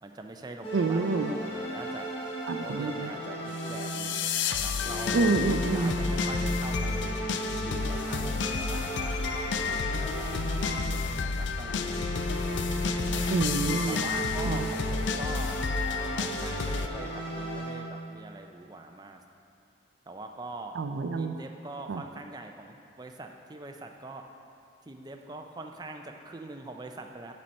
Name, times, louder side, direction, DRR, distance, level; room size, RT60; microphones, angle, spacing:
voice 1, 0.0-2.1 2.6-5.3 5.7-7.3 7.6-9.3 9.6-10.4 10.9-12.1 13.1-13.2 13.9-15.6 16.0-19.2 20.1-20.8 21.2-24.2 24.9-27.3, right 2 dB, 20° right, 4 dB, 0.5 m, -43 dB
sound 1, 0.6-4.3 4.8-11.2 11.6-18.1, equal, 30° left, 1.3 m, -35 dB
voice 2, 0.7-1.3 2.5-3.1 5.1-5.9 13.3-14.1 14.4-14.7 20.8-21.4 21.9-22.0, right 4 dB, 85° right, 7 dB, 0.4 m, -28 dB
sound 2, 3.6-16.9, left 5 dB, 75° left, 0.4 m, -31 dB
9.4 x 4.3 x 6.4 m, 2.6 s
head